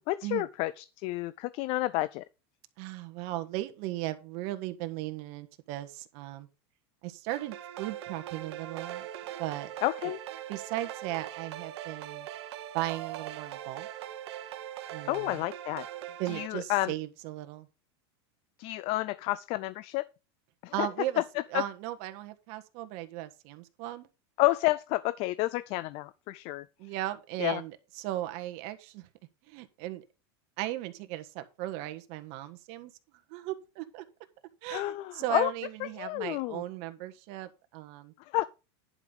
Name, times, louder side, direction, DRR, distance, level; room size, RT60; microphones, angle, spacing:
voice 1, 0.0-2.2 9.8-10.2 15.0-15.9 16.3-16.9 18.6-20.1 20.6-20.9 21.2-21.6 24.4-26.6 27.4-27.6 34.7-35.5 35.8-36.6 38.2-38.5, left 18 dB, 45° left, 0.5 m, -30 dB
voice 2, 2.8-6.5 7.0-9.1 9.4-9.7 10.5-12.3 12.7-13.9 14.9-15.4 16.2-17.7 20.7-21.2 21.5-24.1 26.8-29.1 29.5-30.0 30.6-32.9 33.3-34.0 34.6-38.1, right 15 dB, 55° right, 1.4 m, -37 dB
sound 1, 7.3-16.5, right 12 dB, 75° right, 1.1 m, -41 dB
11.0 x 5.5 x 5.0 m
supercardioid pair, 135°, 14 cm